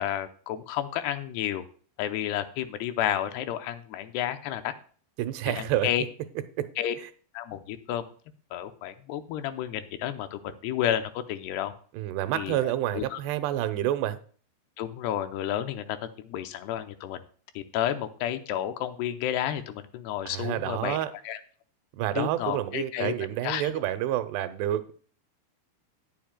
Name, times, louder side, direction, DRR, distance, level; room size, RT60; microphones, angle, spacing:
voice 1, 0.0-1.7 2.0-4.7 5.5-6.0 6.8-6.9 7.3-8.0 8.5-11.7 12.3-13.2 14.8-16.0 16.2-17.2 17.6-21.0 21.3-21.4 22.2-23.1 23.4-23.7, left 11 dB, 90° left, 9 dB, 2.7 m, -31 dB
voice 2, 5.2-5.9 6.6-6.7 7.0-7.1 11.9-14.2 20.3-21.1 21.9-24.9, right 13 dB, 85° right, 11 dB, 2.9 m, -29 dB
19.0 x 7.4 x 2.2 m, 0.44 s
omnidirectional pair, 4.7 m